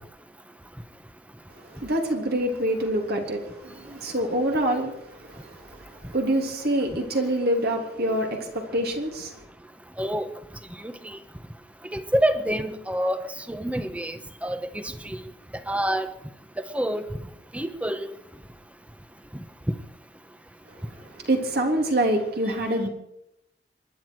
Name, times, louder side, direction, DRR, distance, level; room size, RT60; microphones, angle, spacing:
voice 1, 1.5-9.4 20.7-22.9, right 1 dB, 60° right, 3.3 m, -26 dB
voice 2, 10.8-11.2 11.9-13.2 13.5-15.2 15.7-16.1 16.6-17.1 17.5-18.1, right 1 dB, 10° right, 1.1 m, -27 dB
27.0 x 11.0 x 4.7 m
head